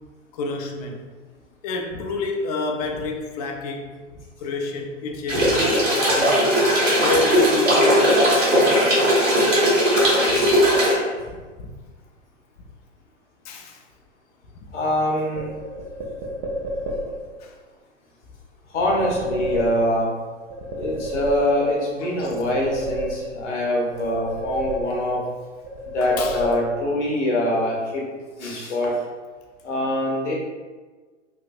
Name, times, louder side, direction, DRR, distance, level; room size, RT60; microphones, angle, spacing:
voice 1, 0.3-1.1 1.6-6.5 7.0-9.1 10.0-10.6 11.3-11.7 13.4-13.8 17.4-17.5 22.0-22.3 26.0-26.5, left 3 dB, 35° left, 2 dB, 0.4 m, -30 dB
sound 1, 5.3-10.9, equal, 90° right, 1.1 m, -18 dB
voice 2, 14.7-15.5 18.7-20.1 20.8-25.2 25.9-28.0 28.4-28.9 29.6-30.3, left 1 dB, 65° left, -3 dB, 1.0 m, -24 dB
sound 2, 15.3-17.3 18.8-20.1 20.5-21.9 22.2-23.6 23.9-25.3 25.6-27.0, equal, 30° right, 0.4 m, -31 dB
3.3 x 2.5 x 2.3 m, 1.4 s
figure-of-eight pair, 105°, 38 cm